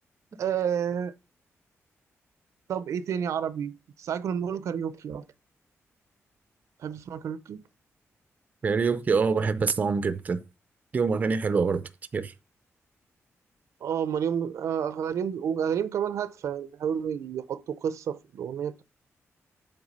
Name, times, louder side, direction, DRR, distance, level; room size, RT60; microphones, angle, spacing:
voice 1, 0.4-1.1 2.7-3.7 4.0-5.2 6.8-7.6 13.8-18.8, right 8 dB, 80° right, 0.6 m, -30 dB
voice 2, 8.6-10.4 10.9-11.8 12.1-12.3, right 5 dB, 30° right, 0.5 m, -25 dB
8.0 x 3.5 x 5.4 m
wide cardioid pair, 175°, 5 cm